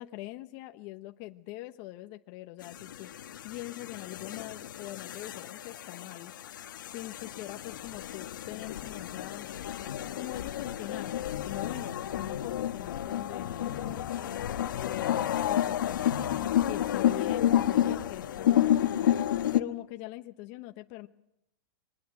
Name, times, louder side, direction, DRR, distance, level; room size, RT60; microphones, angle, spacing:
voice 1, 0.0-3.1 3.4-6.3 6.9-9.5 10.2-14.2 14.7-18.8 19.5-21.1, left 18 dB, 45° left, 7 dB, 1.1 m, -42 dB
sound 1, 2.6-19.6, left 11 dB, 85° left, 1.4 m, -30 dB
23.5 x 19.5 x 7.9 m, 0.81 s
supercardioid pair, 140°, 10 cm